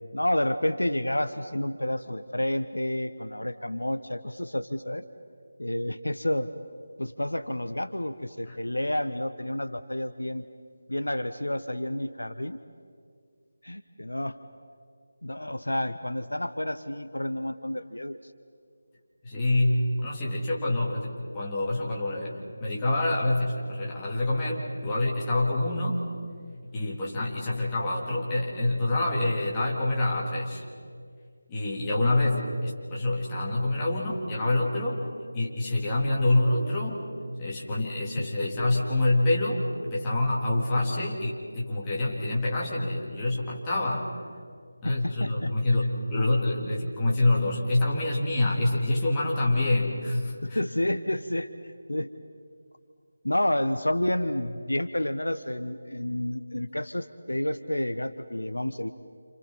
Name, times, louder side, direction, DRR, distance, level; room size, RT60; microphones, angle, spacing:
voice 1, 0.1-5.0 5.6-6.5 7.0-10.4 10.9-12.6 13.6-14.4 15.2-18.2 44.8-45.5 50.4-51.5 51.9-52.1 53.2-58.9, left 1 dB, 75° left, 11 dB, 1.1 m, -30 dB
voice 2, 19.2-26.0 26.7-30.6 31.5-35.0 35.3-37.0 37.4-44.1 44.8-50.6, left 2 dB, 15° left, -5 dB, 3.6 m, -26 dB
29.0 x 29.0 x 5.7 m, 2.1 s
figure-of-eight pair, 160°, 0 cm